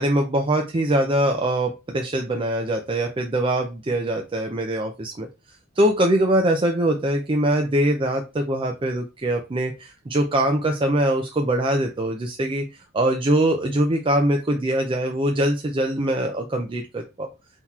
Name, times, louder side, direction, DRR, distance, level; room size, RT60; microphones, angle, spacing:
voice 1, 0.0-5.3 5.8-12.6 12.9-17.3, right 1 dB, 25° right, 3 dB, 0.5 m, -22 dB
4.0 x 3.0 x 4.1 m, 0.27 s
head